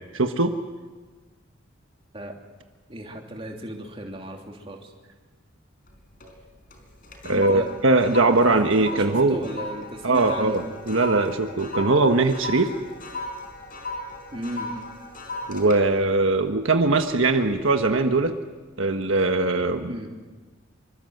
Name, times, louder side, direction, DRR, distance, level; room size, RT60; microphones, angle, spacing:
voice 1, 0.1-0.5 7.2-9.4 10.0-12.7 15.5-18.3 18.8-19.9, right 3 dB, 70° right, 5 dB, 1.4 m, -21 dB
voice 2, 2.9-4.9 7.3-7.7 8.4-8.6 8.9-10.6 14.3-14.7 19.9-20.1, right 1 dB, 25° right, 1 dB, 3.1 m, -35 dB
sound 1, 5.9-6.4 6.7-17.3 17.7-18.0, left 2 dB, 40° left, 4.7 m, -37 dB
26.5 x 24.5 x 8.0 m, 1.4 s
head